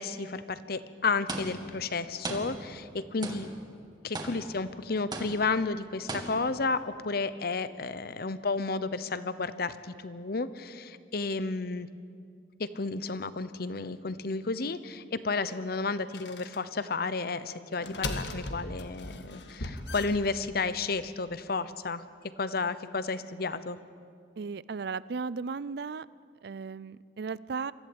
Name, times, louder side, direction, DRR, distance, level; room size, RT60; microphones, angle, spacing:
voice 1, 0.0-3.5 4.0-11.9 12.6-22.0 22.4-23.8, left 4 dB, 60° left, 14 dB, 0.9 m, -32 dB
sound 1, 1.3-1.9 2.2-2.9 3.2-3.7 4.1-4.7 5.1-5.6 6.1-6.7, right 2 dB, 25° right, 2.0 m, -39 dB
sound 2, 16.1-16.6 17.7-20.7, left 2 dB, 75° left, 1.7 m, -38 dB
voice 2, 24.4-26.1 26.4-27.7, right 5 dB, 65° right, 20 dB, 0.5 m, -35 dB
24.5 x 14.5 x 8.8 m, 2.2 s
head